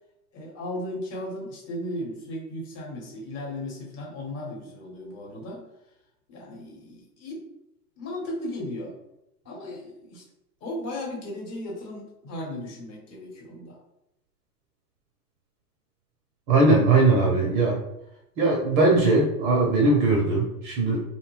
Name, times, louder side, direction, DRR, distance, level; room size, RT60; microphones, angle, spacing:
voice 1, 0.3-5.6 6.3-7.4 8.0-8.9 9.4-10.2 10.6-13.8, left 1 dB, 35° left, -2 dB, 1.1 m, -36 dB
voice 2, 16.5-17.8 18.4-21.0, right 3 dB, 30° right, -2 dB, 0.5 m, -20 dB
2.6 x 2.1 x 3.0 m, 0.86 s
hypercardioid pair, 115°, 47 cm